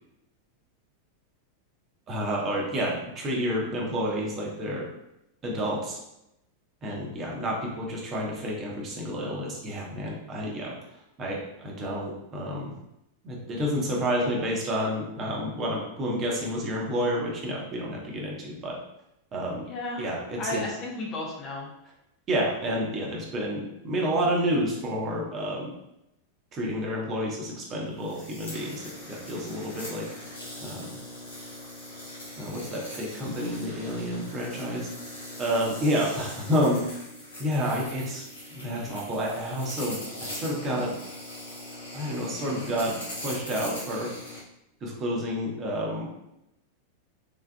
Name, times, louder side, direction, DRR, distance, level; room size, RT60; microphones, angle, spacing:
voice 1, 2.1-4.9 5.4-6.0 6.8-10.7 11.2-12.7 13.2-18.8 19.3-19.6 20.0-20.7 22.3-25.7 26.5-30.1 30.6-31.0 32.4-34.9 35.4-36.8 37.4-38.3 38.5-40.9 41.9-42.9 43.2-44.1 44.8-46.3, equal, 30° right, -2 dB, 0.9 m, -29 dB
voice 2, 19.7-21.7, left 2 dB, 30° left, -2 dB, 0.8 m, -34 dB
sound 1, 28.0-44.4, left 1 dB, 75° left, 1.5 m, -41 dB
3.8 x 3.5 x 2.2 m, 0.86 s
figure-of-eight pair, 90°, 0 cm